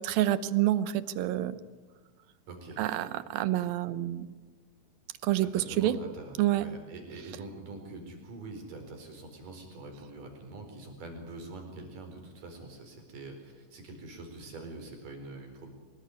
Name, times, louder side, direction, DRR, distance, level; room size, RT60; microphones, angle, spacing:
voice 1, 0.0-1.6 2.8-4.3 5.2-6.0 6.4-6.6, right 13 dB, 90° right, 15 dB, 2.8 m, -28 dB
voice 2, 2.5-2.8 5.4-15.7, right 2 dB, 65° right, 4 dB, 6.1 m, -44 dB
24.0 x 20.0 x 9.8 m, 1.3 s
omnidirectional pair, 4.0 m